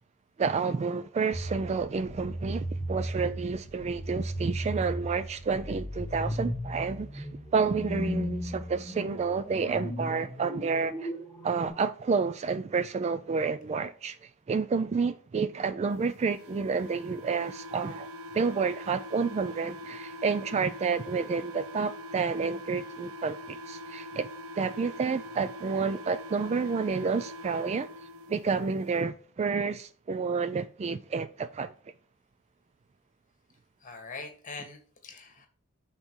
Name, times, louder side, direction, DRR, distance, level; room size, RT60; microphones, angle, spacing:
voice 1, 0.4-11.1 11.4-24.3 24.5-27.9 28.3-31.7, right 5 dB, 30° right, 0.3 m, -30 dB
sound 1, 1.3-11.7, equal, 15° left, 1.2 m, -36 dB
sound 2, 16.3-28.3, left 1 dB, 65° right, 0.9 m, -43 dB
voice 2, 33.8-35.5, left 4 dB, 35° left, 1.6 m, -43 dB
5.9 x 4.0 x 6.1 m
head